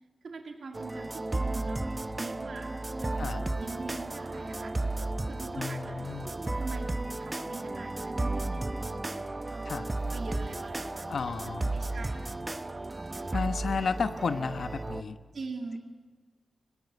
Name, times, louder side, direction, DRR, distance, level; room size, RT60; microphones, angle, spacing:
voice 1, 0.2-4.8 5.3-11.2 11.5-12.3 13.1-13.5 15.3-15.8, right 3 dB, 70° right, 2 dB, 2.2 m, -43 dB
sound 1, 0.7-15.0, right 2 dB, 20° right, 0.8 m, -34 dB
voice 2, 3.2-3.5 5.5-6.3 9.6-9.9 11.1-11.8 13.3-15.2, left 5 dB, 70° left, 9 dB, 1.0 m, -32 dB
24.5 x 21.5 x 9.4 m, 1.4 s
wide cardioid pair, 130°, 0 cm